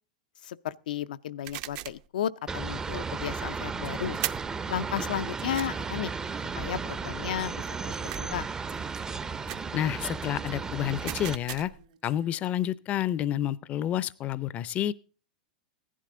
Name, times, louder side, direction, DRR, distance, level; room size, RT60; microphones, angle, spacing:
voice 1, 0.4-4.2 4.7-6.1 6.6-7.6 8.0-8.5, left 10 dB, 80° left, 0.6 m, -33 dB
sound 1, 1.4-2.1 4.2-4.6 5.5-5.7 8.1-8.5 9.5-9.7 11.1-11.9, right 15 dB, 55° right, 0.7 m, -37 dB
sound 2, 2.5-11.4, right 5 dB, 15° right, 0.6 m, -34 dB
Female speech woman speaking, 3.8-8.1 8.7-12.7, right 10 dB, 70° right, 2.8 m, -57 dB
voice 2, 9.7-11.7 12.0-14.9, left 11 dB, 30° left, 0.5 m, -29 dB
15.5 x 11.0 x 3.7 m
hypercardioid pair, 125°, 4 cm